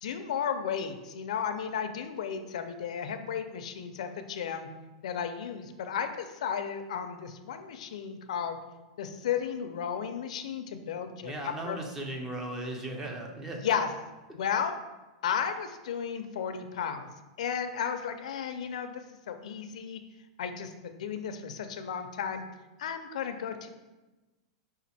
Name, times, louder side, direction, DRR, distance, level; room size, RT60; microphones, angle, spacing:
voice 1, 0.0-4.7 5.0-8.6 9.0-11.8 13.0-13.1 13.5-13.9 14.3-14.8 15.2-17.1 17.4-20.0 20.4-22.4 22.8-23.7, left 7 dB, 80° left, 8 dB, 0.4 m, -34 dB
voice 2, 11.2-13.8, right 1 dB, 10° right, 2 dB, 0.4 m, -37 dB
5.1 x 2.4 x 4.1 m, 1.1 s
supercardioid pair, 170°, 4 cm